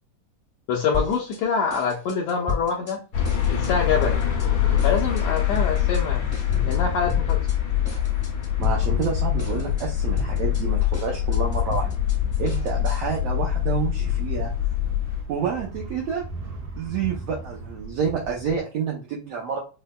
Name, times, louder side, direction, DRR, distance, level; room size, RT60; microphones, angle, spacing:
voice 1, 0.7-3.0 3.3-4.2 4.8-6.3 6.7-7.4 9.5-9.6, left 5 dB, 80° left, -2 dB, 1.6 m, -25 dB
sound 1, 0.9-1.4 1.7-2.9 3.2-3.7 4.0-4.5 4.8-6.0 6.3-6.8 7.1-7.6 7.8-9.1 9.4-9.9 10.2-13.2, left 6 dB, 20° left, 0.7 m, -32 dB
sound 2, 3.1-15.2, left 12 dB, 65° left, 1.6 m, -24 dB
sound 3, 3.1-18.6, right 2 dB, 60° right, 1.4 m, -37 dB
voice 2, 8.6-11.9 12.4-14.5 15.3-16.2 16.8-19.6, right 6 dB, 85° right, -2 dB, 1.4 m, -28 dB
5.9 x 2.1 x 2.2 m, 0.34 s
omnidirectional pair, 3.8 m